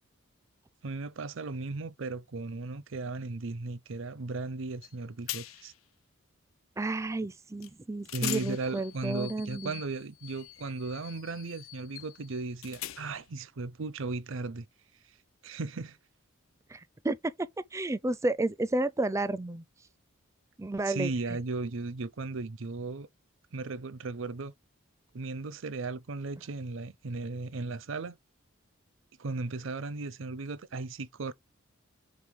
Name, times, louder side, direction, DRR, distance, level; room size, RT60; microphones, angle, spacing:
voice 1, 0.8-5.7 8.1-14.7 15.4-16.0 20.8-23.1 23.5-24.5 25.1-28.2 29.2-31.3, right 3 dB, 65° right, 0.6 m, -36 dB
sound 1, 4.8-4.9 5.3-5.8 7.6-7.7 8.1-13.3, left 14 dB, 85° left, 0.6 m, -42 dB
voice 2, 6.8-9.8 16.7-19.6 20.6-21.1, right 2 dB, 15° right, 0.4 m, -32 dB
5.4 x 3.8 x 4.6 m
head